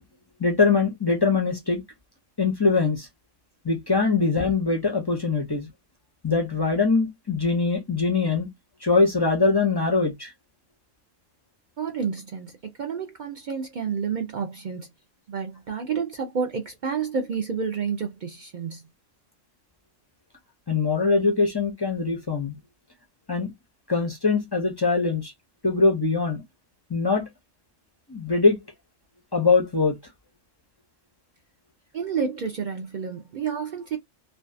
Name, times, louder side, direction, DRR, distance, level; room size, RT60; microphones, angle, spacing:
voice 1, 0.4-1.8 2.4-3.1 3.6-5.7 6.2-8.5 8.8-10.3 20.7-22.5 23.3-23.5 23.9-25.3 25.6-26.4 26.9-27.3 28.1-28.6 29.3-30.0, left 4 dB, 35° left, 0.3 m, -22 dB
voice 2, 11.8-14.9 15.3-18.9 31.9-34.0, right 6 dB, 75° right, 0.4 m, -30 dB
2.5 x 2.3 x 2.4 m
omnidirectional pair, 1.4 m